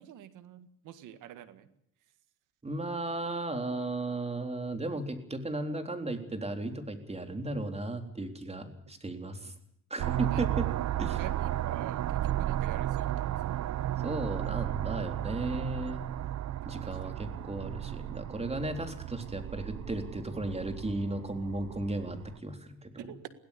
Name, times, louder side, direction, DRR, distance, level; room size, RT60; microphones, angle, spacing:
voice 1, 0.0-1.7 9.4-9.5 10.2-10.4 11.2-14.0 16.8-17.1 23.0-23.3, right 11 dB, 90° right, 12 dB, 1.9 m, -47 dB
voice 2, 2.6-9.5 9.9-10.7 11.0-11.2 14.0-16.0 16.7-23.0, right 2 dB, 20° right, 6 dB, 3.8 m, -35 dB
sound 1, 10.0-22.4, right 13 dB, 65° right, 0.8 m, -34 dB
22.0 x 17.0 x 8.5 m, 0.74 s
cardioid pair, 90°, 30 cm